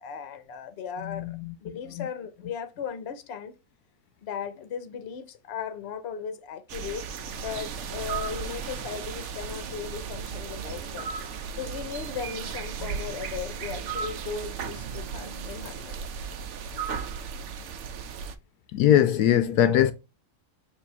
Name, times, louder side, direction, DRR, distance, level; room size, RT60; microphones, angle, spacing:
voice 1, 0.0-3.5 4.2-11.1 11.6-16.0, left 7 dB, 50° left, 0.9 m, -37 dB
voice 2, 1.0-1.5 1.9-2.1 18.7-19.9, left 10 dB, 75° left, 1.1 m, -21 dB
sound 1, 6.7-18.4, right 6 dB, 60° right, 0.9 m, -35 dB
sound 2, 9.5-15.8, right 6 dB, 80° right, 0.4 m, -47 dB
6.9 x 2.8 x 5.3 m
omnidirectional pair, 1.8 m